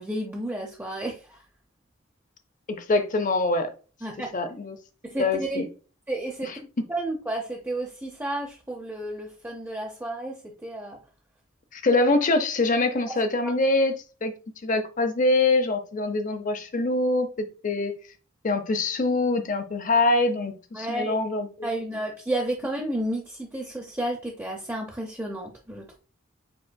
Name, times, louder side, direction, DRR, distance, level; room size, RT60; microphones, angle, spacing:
voice 1, 0.0-1.4 4.0-4.4 5.0-5.6 6.1-6.5 6.9-11.0 13.1-13.2 13.4-13.5 20.7-21.2 21.6-26.0, right 1 dB, 10° right, 0.5 m, -32 dB
voice 2, 2.7-3.7 4.3-4.8 5.2-5.7 6.4-6.6 11.7-13.9 14.2-14.3 14.6-18.0 18.4-21.7, left 2 dB, 40° left, 0.6 m, -24 dB
5.2 x 4.2 x 2.2 m
head